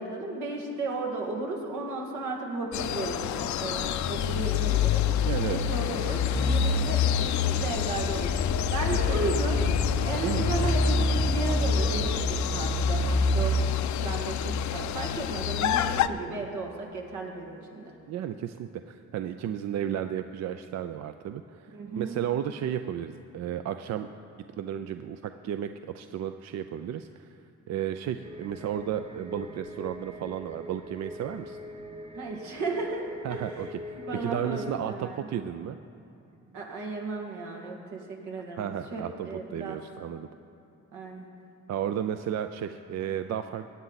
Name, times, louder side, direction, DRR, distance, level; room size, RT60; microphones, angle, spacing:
voice 1, 0.0-5.0 5.5-9.6 10.0-13.6 14.0-17.9 21.7-22.2 32.2-33.0 33.3-33.5 33.9-35.2 36.5-39.8 40.9-41.3, right 3 dB, 85° right, 0 dB, 1.9 m, -34 dB
sound 1, 2.7-16.1, left 11 dB, 70° left, 0.5 m, -28 dB
voice 2, 5.2-5.6 9.1-9.2 10.1-10.4 16.3-16.4 18.1-24.1 24.5-27.4 27.7-31.6 33.2-35.8 38.6-40.3 41.7-43.6, right 10 dB, 60° right, 9 dB, 0.5 m, -33 dB
sound 2, 6.3-13.6, equal, 5° left, 0.6 m, -27 dB
sound 3, 28.2-34.8, left 1 dB, 20° right, 0.9 m, -43 dB
17.5 x 9.2 x 4.1 m, 2.8 s
cardioid pair, 90°, 30 cm